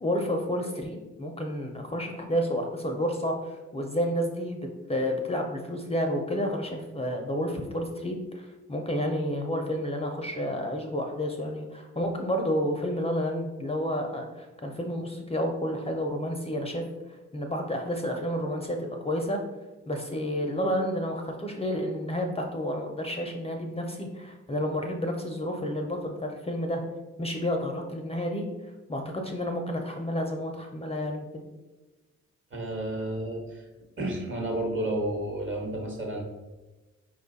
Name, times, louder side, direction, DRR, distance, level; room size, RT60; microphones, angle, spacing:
voice 1, 0.0-16.8 17.3-19.4 19.9-26.8 27.2-28.5 28.9-31.4, equal, 20° left, 2 dB, 0.5 m, -30 dB
voice 2, 32.5-33.6 34.0-36.2, right 1 dB, 40° right, 1 dB, 1.2 m, -31 dB
4.7 x 2.3 x 4.0 m, 1.1 s
cardioid pair, 65°, 30 cm